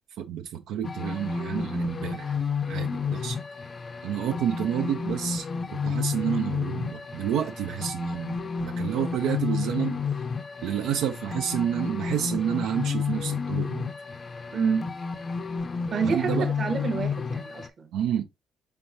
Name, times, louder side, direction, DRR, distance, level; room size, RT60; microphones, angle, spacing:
voice 1, 0.2-2.3 2.7-3.4 4.0-10.0 10.6-13.9 16.0-16.5 17.9-18.2, right 9 dB, 90° right, 0.5 m, -29 dB
sound 1, 0.8-17.7, left 5 dB, 40° left, 0.5 m, -31 dB
voice 2, 14.5-14.9 15.9-17.9, right 5 dB, 50° right, 1.0 m, -28 dB
4.6 x 3.5 x 2.6 m
cardioid pair, 90°, 0 cm